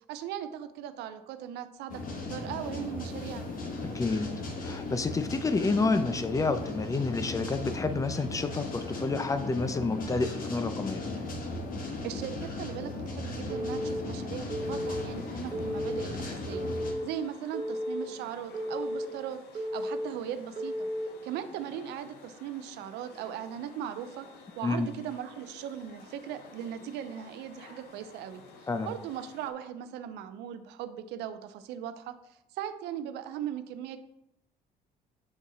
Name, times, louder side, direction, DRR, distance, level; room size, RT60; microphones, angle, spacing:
voice 1, 0.1-3.4 12.0-20.9 21.2-24.3 24.6-28.4 28.8-34.0, right 9 dB, 85° right, 10 dB, 0.5 m, -39 dB
sound 1, 1.9-16.9, left 2 dB, 55° left, 1.4 m, -37 dB
voice 2, 3.9-4.3 4.6-11.0 24.6-24.9 28.7-28.9, left 3 dB, 20° left, 10 dB, 0.5 m, -29 dB
Telephone, 13.5-14.0 14.5-15.0 15.5-16.0 16.5-17.0 17.5-18.0 18.5-19.1 19.5-20.1 20.6-21.1, equal, 25° right, 1.2 m, -33 dB
sound 2, 14.5-29.5, left 4 dB, 75° left, 0.9 m, -53 dB
7.0 x 3.6 x 4.1 m, 0.80 s
cardioid pair, 110°, 17 cm